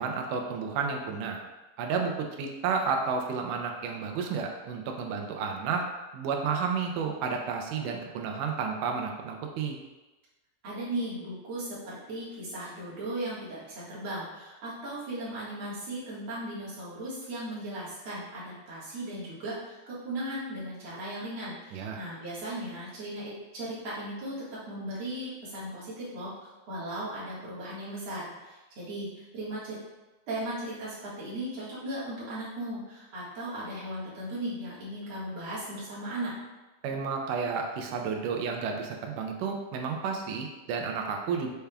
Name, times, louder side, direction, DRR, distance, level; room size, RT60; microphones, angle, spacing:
voice 1, 0.0-1.4 1.8-5.8 6.1-9.8 21.7-22.0 36.8-41.5, right 5 dB, 85° right, 2 dB, 2.2 m, -31 dB
voice 2, 10.6-24.4 24.7-29.8 30.3-36.3, right 1 dB, 50° right, -9 dB, 2.1 m, -37 dB
6.9 x 3.4 x 2.2 m, 1.1 s
omnidirectional pair, 3.7 m